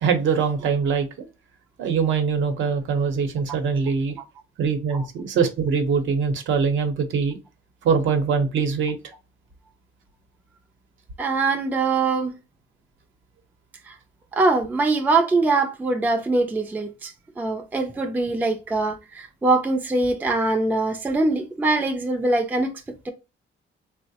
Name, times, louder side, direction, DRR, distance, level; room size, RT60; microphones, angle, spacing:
voice 1, 0.0-1.3 1.8-4.1 4.6-7.4 7.8-9.0, right 5 dB, 70° right, 0.8 m, -23 dB
voice 2, 11.2-12.3 13.9-14.0 14.3-22.7 23.1-23.2, right 3 dB, 10° right, 0.3 m, -23 dB
3.8 x 2.0 x 2.7 m
cardioid pair, 150°, 21 cm